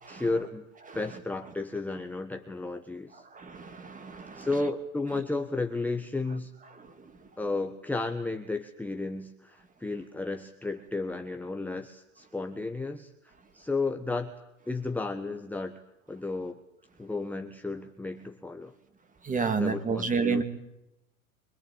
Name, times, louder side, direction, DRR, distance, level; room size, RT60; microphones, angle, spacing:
voice 1, 0.1-0.7 0.9-3.2 4.3-6.5 7.4-14.3 14.7-15.8 16.1-16.6 17.0-18.7 19.6-20.4, left 3 dB, 5° left, 5 dB, 1.4 m, -33 dB
voice 2, 3.3-4.5 19.2-20.4, right 5 dB, 20° right, 9 dB, 2.9 m, -29 dB
25.5 x 21.0 x 8.8 m, 0.88 s
hypercardioid pair, 115°, 42 cm